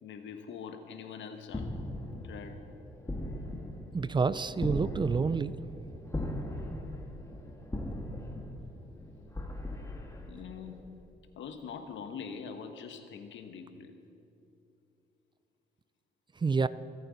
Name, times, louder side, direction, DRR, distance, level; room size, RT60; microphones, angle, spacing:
voice 1, 0.0-1.7 2.1-2.6 10.2-10.9 11.4-13.9, left 6 dB, 70° left, 7 dB, 1.2 m, -43 dB
sound 1, 1.5-10.8, left 1 dB, 15° left, 1.6 m, -39 dB
voice 2, 3.9-5.6 16.4-16.7, right 5 dB, 25° right, 16 dB, 0.4 m, -28 dB
25.0 x 8.8 x 4.0 m, 2.7 s
cardioid pair, 90°, 20 cm